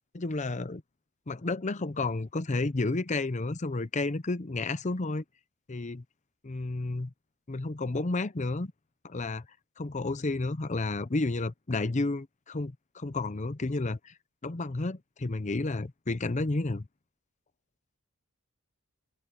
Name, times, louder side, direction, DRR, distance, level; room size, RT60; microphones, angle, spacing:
voice 1, 0.1-0.8 1.3-5.2 5.7-6.0 6.4-7.1 7.5-8.7 9.0-9.4 9.8-14.1 14.4-16.9, left 2 dB, 30° left, 0.7 m, -31 dB
open air
head